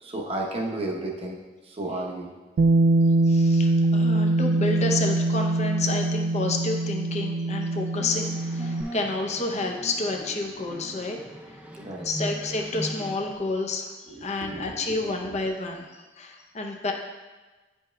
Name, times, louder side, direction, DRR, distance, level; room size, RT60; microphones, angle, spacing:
voice 1, 0.0-1.4 1.6-2.3 11.7-12.1 14.1-14.7 15.0-15.3, right 2 dB, 35° right, -1 dB, 0.9 m, -33 dB
Bass guitar, 2.6-8.8, right 2 dB, 85° right, 0.3 m, -23 dB
voice 2, 3.3-11.2 12.0-13.9 14.2-16.9, left 2 dB, 40° left, 2 dB, 0.6 m, -30 dB
sound 1, 8.0-13.3, right 1 dB, 5° right, 0.4 m, -39 dB
9.4 x 5.4 x 2.2 m, 1.2 s
head